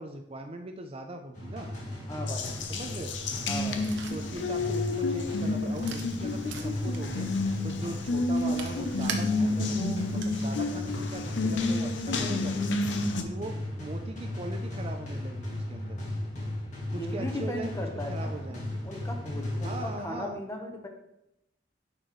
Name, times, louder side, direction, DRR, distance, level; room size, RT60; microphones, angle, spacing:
voice 1, 0.0-1.7 2.7-3.2 4.1-7.3 7.6-12.8 13.2-13.5 13.8-16.0 16.9-17.7 18.1-18.8 19.6-20.4, right 2 dB, 30° right, 5 dB, 0.5 m, -40 dB
sound 1, 1.3-20.3, left 1 dB, 40° left, 2.1 m, -36 dB
voice 2, 2.1-2.6 3.5-3.9 16.9-18.3 18.8-20.9, left 1 dB, 15° left, 3 dB, 1.0 m, -37 dB
Water tap faucet, 2.3-13.2, left 2 dB, 85° left, 0.7 m, -30 dB
sound 2, 3.4-10.6, right 6 dB, 80° right, 0.9 m, -44 dB
10.5 x 4.7 x 3.1 m, 0.86 s
head